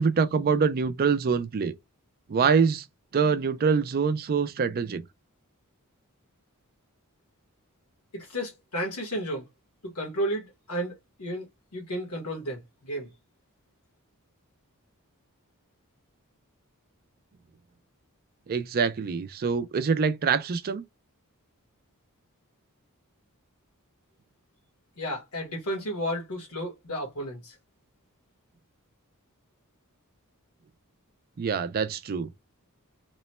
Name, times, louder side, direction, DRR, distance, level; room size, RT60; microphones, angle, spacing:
voice 1, 0.0-1.7 2.3-2.8 3.1-5.0 18.5-20.8 31.4-32.3, right 5 dB, 40° right, 0.4 m, -25 dB
voice 2, 8.1-9.5 9.9-11.5 11.7-13.1 25.0-27.5, equal, 90° left, 1.3 m, -32 dB
3.0 x 2.1 x 4.1 m
head